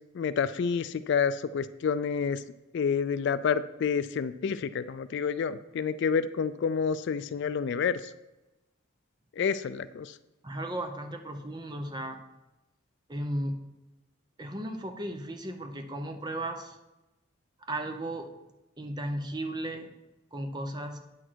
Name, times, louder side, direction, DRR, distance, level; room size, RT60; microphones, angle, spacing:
voice 1, 0.1-2.4 2.7-8.0 9.4-10.1, left 6 dB, 55° left, 14 dB, 0.3 m, -29 dB
voice 2, 10.4-12.2 13.1-13.6 14.4-16.8 17.7-18.3 18.8-19.9 20.3-21.0, right 1 dB, 20° right, 5 dB, 0.7 m, -35 dB
9.0 x 6.2 x 4.6 m, 1.0 s
head